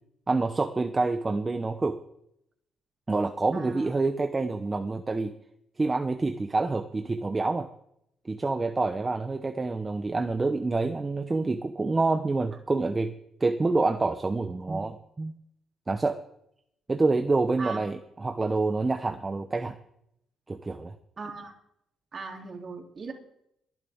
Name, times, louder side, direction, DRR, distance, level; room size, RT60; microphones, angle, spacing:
voice 1, 0.3-2.0 3.1-5.3 5.8-7.7 8.2-13.1 13.4-15.3 15.9-16.2 16.9-19.8 20.5-20.9, right 3 dB, 25° right, 8 dB, 0.8 m, -27 dB
voice 2, 3.5-3.9 17.6-17.8 21.2-21.5 22.1-23.1, right 4 dB, 40° right, 2 dB, 3.1 m, -38 dB
22.5 x 10.5 x 3.6 m, 0.75 s
cardioid pair, 90°, 0 cm